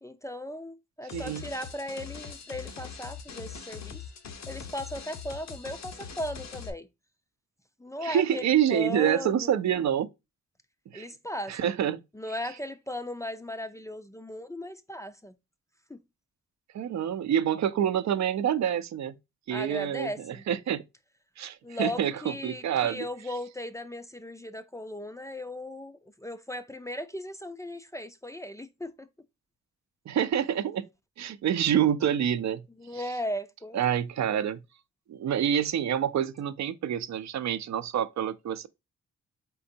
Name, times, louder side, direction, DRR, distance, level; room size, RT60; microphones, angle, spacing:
voice 1, 0.0-4.0 4.5-6.9 7.8-9.6 10.9-11.6 12.1-15.3 15.9-16.0 19.5-20.4 21.6-29.1 32.8-33.8 34.2-34.4, left 1 dB, 10° left, 0.4 m, -37 dB
sound 1, 1.1-6.7, left 7 dB, 65° left, 0.9 m, -42 dB
voice 2, 1.1-1.4 8.0-10.1 10.9-11.1 11.5-12.0 16.7-19.2 19.5-20.8 21.4-23.1 30.1-30.9 31.2-32.6 32.9-33.0 33.7-34.6 35.1-38.7, right 9 dB, 70° right, 0.5 m, -27 dB
4.3 x 3.8 x 2.6 m
cardioid pair, 105°, 29 cm